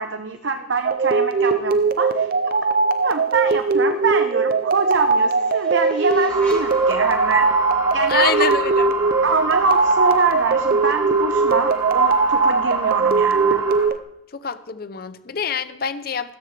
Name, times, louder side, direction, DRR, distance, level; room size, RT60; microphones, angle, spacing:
voice 1, 0.0-2.3 2.6-2.7 3.0-7.5 7.9-8.5 9.2-13.6, right 4 dB, 80° right, 6 dB, 0.9 m, -24 dB
sound 1, 0.8-14.0, right 3 dB, 50° right, 0.6 m, -20 dB
sound 2, 4.3-9.2, equal, 10° left, 4.9 m, -46 dB
sound 3, 6.3-13.9, right 5 dB, 20° right, 1.7 m, -25 dB
voice 2, 8.1-8.9 14.3-16.4, left 6 dB, 50° left, 13 dB, 0.6 m, -26 dB
14.0 x 13.5 x 3.3 m, 0.80 s
head